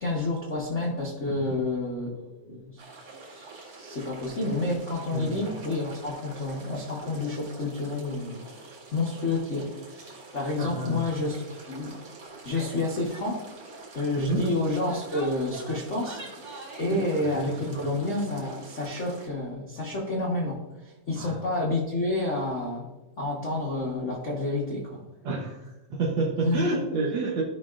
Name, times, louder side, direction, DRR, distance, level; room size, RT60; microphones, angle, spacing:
voice 1, 0.0-11.9 12.4-13.5 13.9-22.9 23.2-25.0 26.4-26.7, left 2 dB, 70° left, -3 dB, 0.7 m, -30 dB
voice 2, 1.3-1.6 5.1-5.4 10.6-11.0 14.3-14.4 16.9-17.8 21.2-21.4 25.2-27.4, right 3 dB, 85° right, -2 dB, 1.0 m, -30 dB
sound 1, 2.8-19.3, right 3 dB, 60° right, 3.2 m, -46 dB
Female speech woman speaking / Yell, 12.5-12.8 13.1-13.3 13.6-13.9 14.6-17.0, right 2 dB, 45° right, 2.2 m, -43 dB
14.5 x 5.5 x 2.5 m, 1.0 s
omnidirectional pair, 3.5 m